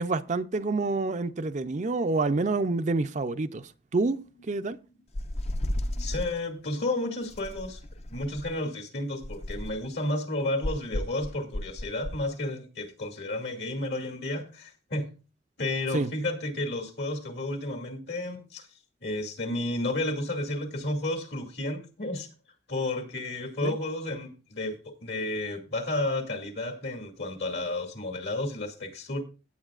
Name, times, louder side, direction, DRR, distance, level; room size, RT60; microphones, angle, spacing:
voice 1, 0.0-4.2 4.5-4.8 15.9-16.1 23.6-23.7, right 3 dB, 45° right, 0.5 m, -27 dB
sound 1, 5.1-6.4 7.3-8.6 9.2-9.9 10.6-12.3, left 1 dB, 40° left, 0.6 m, -33 dB
voice 2, 5.5-7.8 8.1-15.1 15.6-18.7 19.0-22.3 22.7-29.2, left 2 dB, 70° left, 2.4 m, -32 dB
17.0 x 8.3 x 2.5 m
head